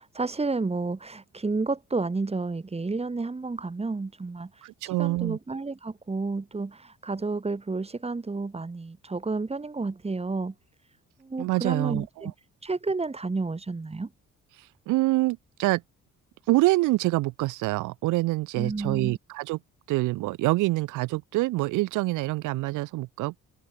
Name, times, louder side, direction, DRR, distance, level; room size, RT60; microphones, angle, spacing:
voice 1, 0.0-10.5 11.2-12.3 12.6-14.1 18.6-19.2, right 3 dB, 20° right, 2.2 m, -31 dB
voice 2, 4.6-5.4 11.4-12.3 14.6-15.8 16.5-19.6 19.9-23.4, right 19 dB, 85° right, 0.5 m, -26 dB
cardioid pair, 90°, 30 cm